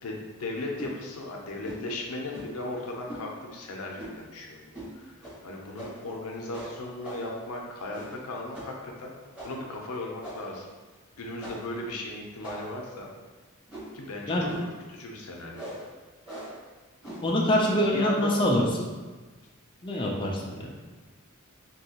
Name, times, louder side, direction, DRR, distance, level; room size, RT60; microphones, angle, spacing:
voice 1, 0.0-9.1 9.4-10.7 11.2-13.1 13.9-14.3 14.6-15.7 17.8-18.4, left 2 dB, 90° left, 0 dB, 0.6 m, -37 dB
sound 1, 0.7-0.9 1.6-1.9 2.3-2.6 3.1-3.3 4.0-4.3 4.7-4.9 5.2-5.4 5.7-6.1 6.5-7.4 7.9-8.2 8.5-8.8 9.3-9.7 10.2-10.6 11.4-11.7 12.4-12.9 13.7-14.0 14.5-14.8 15.5-15.9 16.2-16.6 17.0-17.3, right 1 dB, 5° right, 1.1 m, -41 dB
voice 2, 17.2-18.9 19.8-20.8, left 1 dB, 20° left, -3 dB, 0.4 m, -25 dB
2.9 x 2.7 x 2.8 m, 1.3 s
head